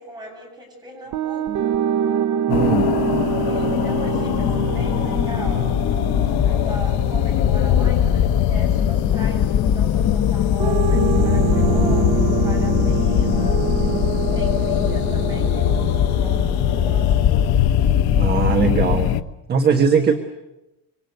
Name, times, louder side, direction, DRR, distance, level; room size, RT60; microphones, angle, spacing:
voice 1, 0.0-1.8 3.4-5.8 6.2-13.6 14.3-17.2 19.6-20.2, right 1 dB, 10° right, 2 dB, 7.9 m, -39 dB
sound 1, 1.1-9.2 10.6-17.3, right 10 dB, 45° right, 0.9 m, -26 dB
sound 2, 2.5-19.2, left 13 dB, 80° left, 1.2 m, -24 dB
voice 2, 2.5-2.9 18.2-19.2 19.5-20.2, right 6 dB, 25° right, 6 dB, 1.4 m, -19 dB
sound 3, 4.3-19.2, left 8 dB, 30° left, 1.0 m, -21 dB
26.5 x 24.5 x 8.1 m, 0.95 s
cardioid pair, 175°, 37 cm